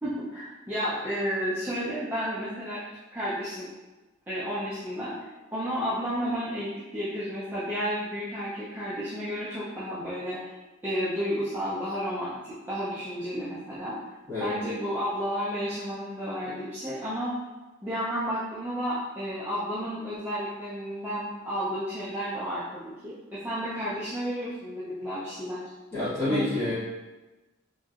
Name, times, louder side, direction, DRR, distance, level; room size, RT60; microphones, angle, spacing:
voice 1, 0.0-2.8 3.1-3.7 4.3-5.1 5.5-10.5 10.8-14.0 14.4-17.3 17.8-25.7 26.3-26.7, equal, 10° right, -12 dB, 0.5 m, -32 dB
voice 2, 25.9-26.7, left 2 dB, 10° left, -14 dB, 1.4 m, -28 dB
3.0 x 2.7 x 2.4 m, 1.1 s
head